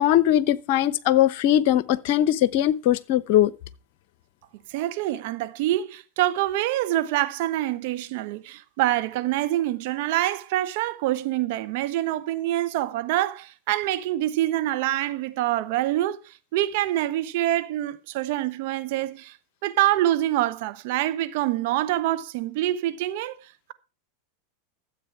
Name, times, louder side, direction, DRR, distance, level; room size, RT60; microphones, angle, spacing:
voice 1, 0.0-3.5, left 12 dB, 55° left, 0.9 m, -20 dB
voice 2, 4.7-19.4 19.6-23.4, right 14 dB, 60° right, 1.1 m, -26 dB
13.5 x 8.0 x 4.8 m
hypercardioid pair, 90°, 0 cm